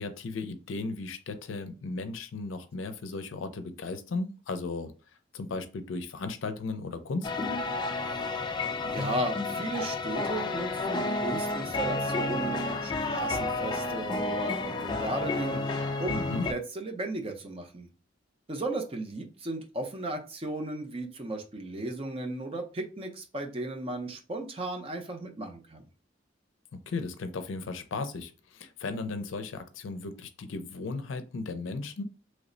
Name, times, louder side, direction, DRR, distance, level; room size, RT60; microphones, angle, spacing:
voice 1, 0.0-4.9 5.3-7.3 16.1-16.5 26.7-32.0, left 3 dB, 85° left, 9 dB, 0.5 m, -35 dB
sound 1, 7.2-16.5, left 2 dB, 25° left, 0.3 m, -31 dB
voice 2, 8.8-17.9 18.5-25.8, right 1 dB, 30° right, 4 dB, 0.6 m, -35 dB
3.2 x 2.0 x 3.7 m, 0.34 s
head